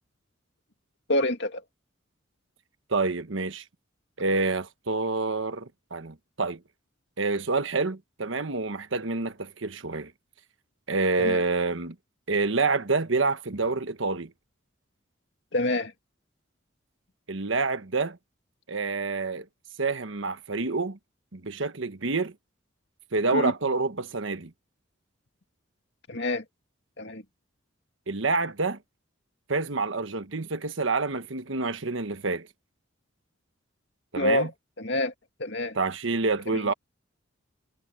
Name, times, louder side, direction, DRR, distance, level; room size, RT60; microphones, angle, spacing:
voice 1, 1.1-1.6 11.2-11.4 15.5-15.9 23.3-23.5 26.1-26.4 27.0-27.2 34.1-34.5 34.8-35.1 35.4-35.8 36.5-36.7, left 1 dB, 65° left, 2.3 m, -27 dB
voice 2, 2.9-3.6 4.2-6.6 7.2-10.1 10.9-11.9 12.3-14.3 17.3-18.2 18.7-19.5 19.8-21.0 21.3-22.3 23.1-24.5 28.1-28.8 29.5-32.5 34.1-34.5 35.7-36.7, right 3 dB, 75° right, 1.3 m, -27 dB
head